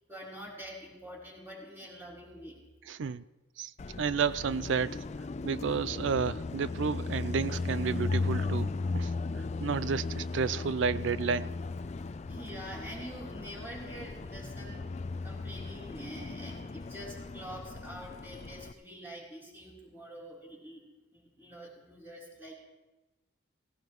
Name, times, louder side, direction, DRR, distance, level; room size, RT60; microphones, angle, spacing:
voice 1, 0.1-2.6 9.8-10.0 12.3-20.8 21.1-22.5, equal, 10° right, -4 dB, 3.5 m, -46 dB
voice 2, 2.9-3.2 3.6-3.7 4.0-5.0 5.4-9.1 9.6-11.5, right 5 dB, 65° right, 16 dB, 0.4 m, -31 dB
Car passing by, 3.8-18.7, left 3 dB, 35° left, 0.4 m, -36 dB
17.5 x 17.0 x 3.1 m, 1.1 s
head